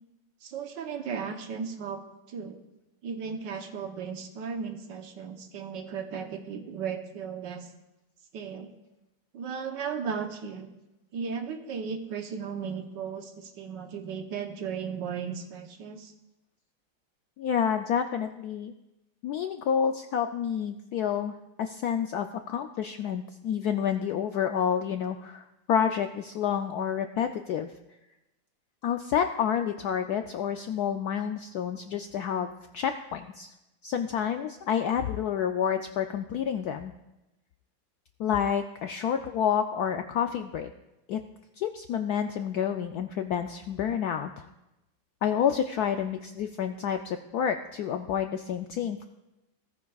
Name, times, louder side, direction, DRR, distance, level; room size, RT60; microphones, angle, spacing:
voice 1, 0.4-2.6 3.0-7.7 8.3-8.7 9.3-10.7 11.1-16.1, right 6 dB, 65° right, 5 dB, 1.5 m, -36 dB
voice 2, 17.4-18.7 19.2-21.3 21.6-27.7 28.8-33.5 33.8-36.9 38.2-40.7 41.1-41.2 41.6-44.5 45.2-49.1, left 8 dB, 75° left, 7 dB, 0.9 m, -29 dB
16.5 x 14.5 x 2.3 m, 0.97 s
omnidirectional pair, 2.1 m